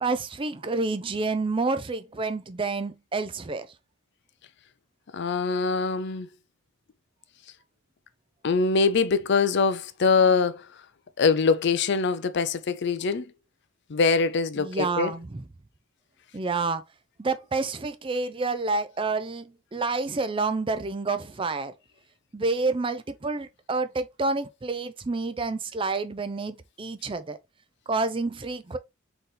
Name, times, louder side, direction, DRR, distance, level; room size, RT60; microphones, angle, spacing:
voice 1, 0.0-3.7 14.6-15.4 16.3-16.8 17.2-21.7 22.3-27.4 27.9-28.8, right 3 dB, 25° right, 0.4 m, -29 dB
voice 2, 5.1-6.3 8.4-10.6 11.2-13.2 13.9-15.1, left 4 dB, 50° left, 0.5 m, -23 dB
4.1 x 4.0 x 3.2 m
head